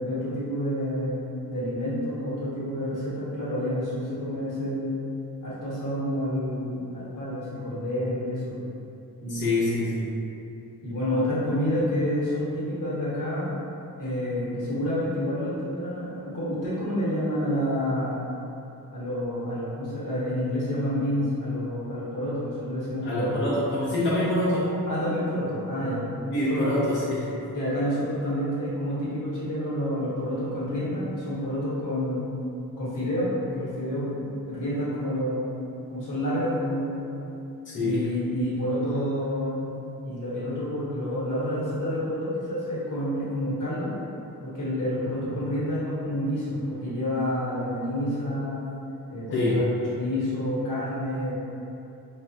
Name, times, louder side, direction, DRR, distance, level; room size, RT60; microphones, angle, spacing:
voice 1, 0.0-5.0 5.4-8.6 9.2-9.9 10.8-13.6 14.0-18.2 18.9-23.4 24.9-26.0 26.4-26.8 27.5-32.3 32.8-35.6 35.9-37.1 37.8-39.7 40.0-43.9 44.4-48.6 49.1-51.3, equal, 60° left, -10 dB, 1.1 m, -29 dB
voice 2, 9.3-10.2 23.0-24.7 26.3-27.3 37.6-38.0 49.3-49.6, left 1 dB, 35° left, -10 dB, 0.5 m, -26 dB
3.3 x 2.1 x 2.6 m, 2.8 s
wide cardioid pair, 140°, 36 cm